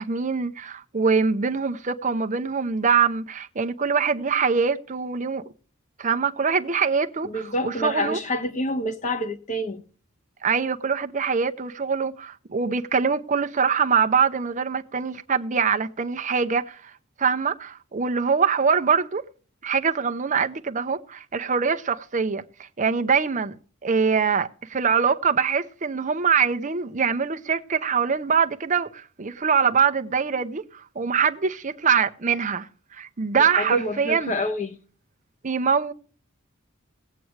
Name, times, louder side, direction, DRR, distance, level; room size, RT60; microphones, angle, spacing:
voice 1, 0.0-5.4 6.0-8.2 10.4-16.9 17.2-19.2 19.6-23.6 23.8-34.3 35.4-35.9, right 6 dB, 35° right, 0.7 m, -23 dB
voice 2, 7.2-9.8 33.4-34.8, equal, 35° left, 1.2 m, -27 dB
18.0 x 8.4 x 3.2 m
head